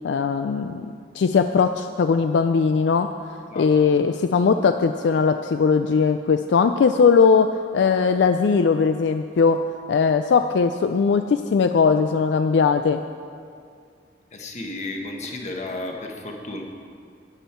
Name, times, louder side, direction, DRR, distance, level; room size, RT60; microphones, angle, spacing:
voice 1, 0.0-3.1 3.6-9.6 9.9-13.0, left 5 dB, 70° left, 8 dB, 0.3 m, -19 dB
voice 2, 14.3-16.6, left 2 dB, 40° left, 2 dB, 1.2 m, -33 dB
12.5 x 9.1 x 4.4 m, 2.3 s
head